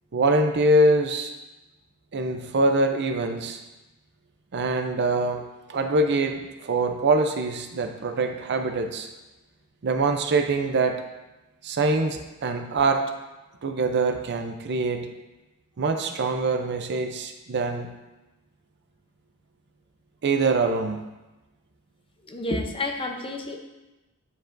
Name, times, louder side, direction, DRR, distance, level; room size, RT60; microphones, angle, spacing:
voice 1, 0.1-1.3 2.1-3.6 4.5-5.4 5.7-9.1 9.8-11.0 11.6-13.0 13.6-15.1 15.8-17.9 20.2-21.0, right 2 dB, 50° right, 6 dB, 0.5 m, -24 dB
voice 2, 22.2-23.6, left 2 dB, 25° left, 3 dB, 0.6 m, -30 dB
9.7 x 4.9 x 2.6 m, 1.1 s
head